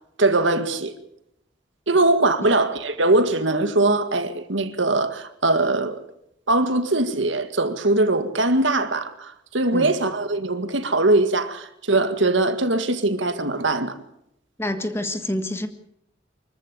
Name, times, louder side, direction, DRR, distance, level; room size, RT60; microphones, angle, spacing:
voice 1, 0.2-0.9 1.9-6.0 6.5-14.0, right 2 dB, 75° right, 2.0 m, -21 dB
voice 2, 14.6-15.7, left 1 dB, 15° left, 1.6 m, -27 dB
25.0 x 14.5 x 8.4 m
head